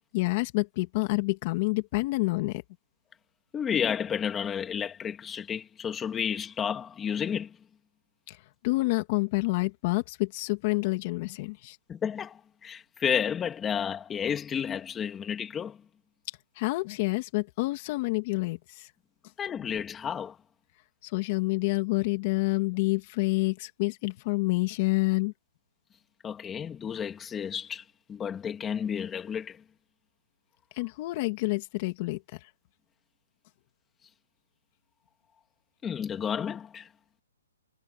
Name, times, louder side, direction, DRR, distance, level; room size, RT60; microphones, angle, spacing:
voice 1, 0.1-2.6 8.3-8.4 8.6-11.8 16.6-18.9 21.0-25.3 30.8-32.2, left 23 dB, 30° left, 2.4 m, -28 dB
voice 2, 3.5-7.5 11.9-15.8 19.4-20.4 26.2-27.8 28.1-29.6 35.8-36.9, left 8 dB, 10° left, 2.6 m, -31 dB
hypercardioid pair, 165°, 0 cm